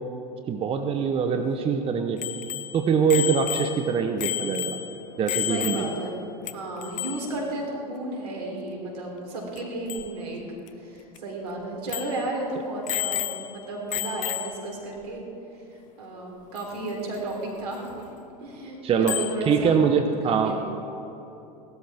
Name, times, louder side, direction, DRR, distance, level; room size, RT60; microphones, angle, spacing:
voice 1, 0.5-2.3 2.7-4.8 5.2-5.8 18.8-19.1 19.5-20.5, right 6 dB, 30° right, 6 dB, 0.8 m, -23 dB
Bicycle bell, 2.2-6.2 6.5-6.6 6.8-7.3 9.6-9.7 9.9-10.1 10.7-10.8 11.2-11.3 11.9-12.3 12.9-13.6 13.9-14.7 16.6-16.7 19.1-19.4, left 13 dB, 40° left, 0.6 m, -31 dB
voice 2, 5.3-6.2 6.5-15.2 15.5-18.1 18.4-19.8 20.2-20.5, right 2 dB, 75° right, -1 dB, 3.4 m, -33 dB
17.0 x 12.5 x 3.5 m, 3.0 s
hypercardioid pair, 90°, 20 cm